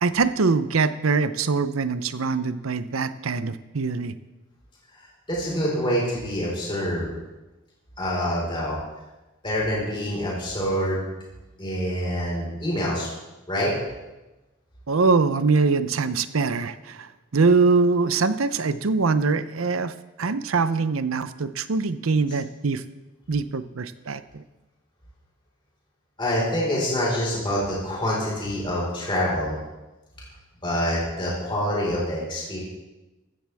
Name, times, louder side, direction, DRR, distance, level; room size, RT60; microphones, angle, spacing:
voice 1, 0.0-4.1 14.9-19.9 20.2-22.8 23.3-24.4, right 4 dB, 80° right, 12 dB, 0.7 m, -23 dB
voice 2, 5.3-7.1 8.0-8.8 9.4-11.0 11.6-13.1 13.5-13.7 26.2-29.6 30.6-32.6, equal, 25° left, -5 dB, 4.5 m, -26 dB
15.0 x 13.5 x 3.5 m, 1.1 s
head